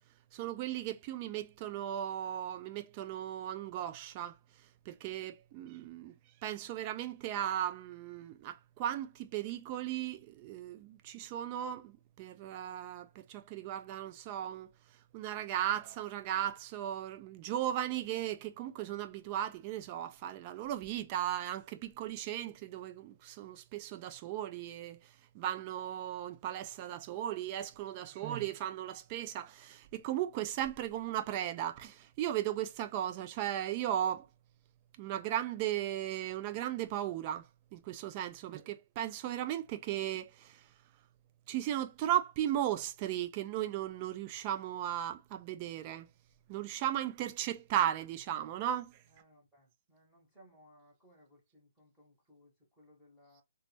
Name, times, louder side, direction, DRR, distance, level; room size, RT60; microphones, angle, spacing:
voice 1, 0.3-4.4 4.9-6.1 6.4-14.7 15.1-25.1 25.3-34.3 35.0-40.6 41.5-46.1 46.5-49.0, right 11 dB, 25° right, 0.3 m, -36 dB
voice 2, 49.1-53.4, equal, 5° right, 0.8 m, -63 dB
2.1 x 2.0 x 3.1 m
hypercardioid pair, 160°, 0 cm